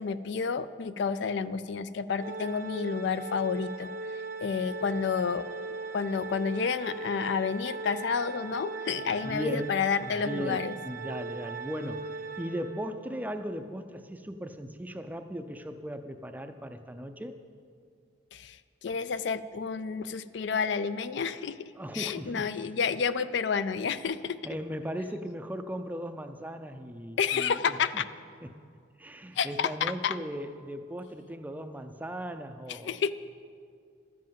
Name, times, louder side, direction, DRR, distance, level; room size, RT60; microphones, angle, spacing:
voice 1, 0.0-3.9 4.4-5.5 5.9-10.7 18.3-18.6 18.8-24.4 27.2-28.0 29.4-30.1 32.8-33.1, left 6 dB, 60° left, 14 dB, 0.4 m, -30 dB
Organ, 2.2-13.1, right 3 dB, 45° right, 0.7 m, -39 dB
voice 2, 9.1-17.3 21.7-22.7 24.4-28.0 28.4-28.6 29.0-33.1, equal, 10° right, 8 dB, 0.4 m, -38 dB
12.0 x 7.6 x 7.5 m, 2.2 s
head